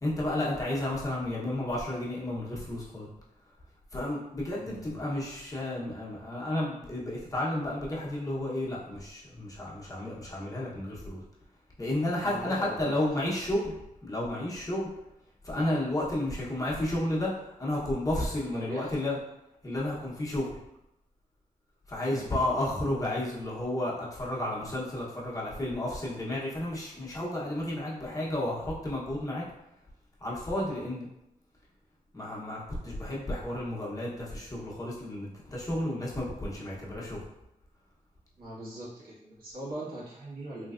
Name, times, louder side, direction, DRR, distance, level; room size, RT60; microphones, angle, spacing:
voice 1, 0.0-3.1 3.9-11.2 11.8-13.7 14.0-14.9 15.4-19.2 19.6-20.6 21.9-29.4 30.2-31.1 32.1-37.2, left 1 dB, 25° left, -5 dB, 0.9 m, -32 dB
voice 2, 4.5-5.0 12.2-13.0 18.5-18.9 22.0-22.3 38.4-40.7, right 1 dB, 85° right, -8 dB, 1.5 m, -40 dB
3.2 x 3.2 x 2.4 m, 0.85 s
wide cardioid pair, 95°, 15 cm